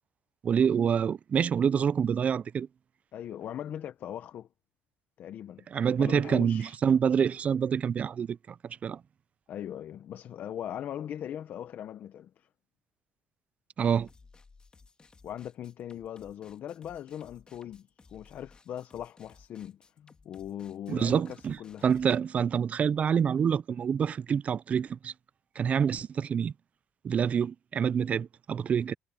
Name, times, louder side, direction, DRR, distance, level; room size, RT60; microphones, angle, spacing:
voice 1, 0.4-2.7 5.7-8.4 8.8-9.0 13.8-14.1 20.9-21.6 21.8-25.1 25.6-26.5 27.0-28.9, right 7 dB, 35° right, 0.4 m, -26 dB
voice 2, 3.1-4.5 5.2-5.6 6.0-6.8 9.5-12.5 15.2-21.9, left 10 dB, 55° left, 1.0 m, -40 dB
sound 1, 13.8-22.2, left 4 dB, 25° left, 2.4 m, -58 dB
cardioid pair, 110°, 4 cm